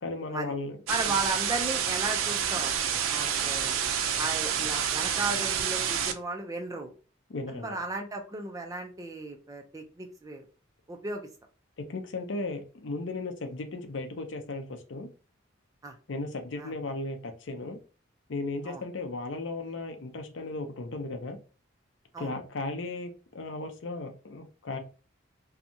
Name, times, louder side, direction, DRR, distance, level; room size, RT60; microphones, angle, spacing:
voice 1, 0.0-0.8 1.0-1.1 7.3-7.8 11.8-15.1 16.1-17.8 18.3-21.4 22.2-24.8, left 2 dB, 65° left, 6 dB, 0.5 m, -36 dB
voice 2, 0.9-3.7 4.2-6.9 7.5-10.5 10.9-11.3 15.8-15.9 16.6-16.7 18.6-18.8 22.1-22.3, right 3 dB, 15° right, 3 dB, 0.4 m, -35 dB
sound 1, 0.9-6.1, right 8 dB, 90° right, 0.4 m, -28 dB
2.7 x 2.2 x 2.6 m, 0.35 s
head